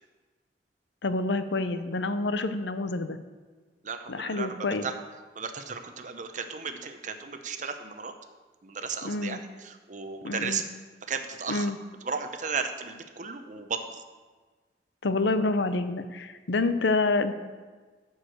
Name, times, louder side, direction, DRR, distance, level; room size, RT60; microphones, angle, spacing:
voice 1, 1.0-3.2 4.1-4.9 9.0-9.4 10.2-10.6 11.5-11.8 15.0-17.3, left 3 dB, 90° left, 11 dB, 0.7 m, -27 dB
voice 2, 3.8-4.9 5.4-8.1 8.6-10.7 11.1-11.7 12.0-14.0, right 5 dB, 45° right, 7 dB, 0.8 m, -35 dB
13.0 x 4.8 x 6.5 m, 1.4 s
head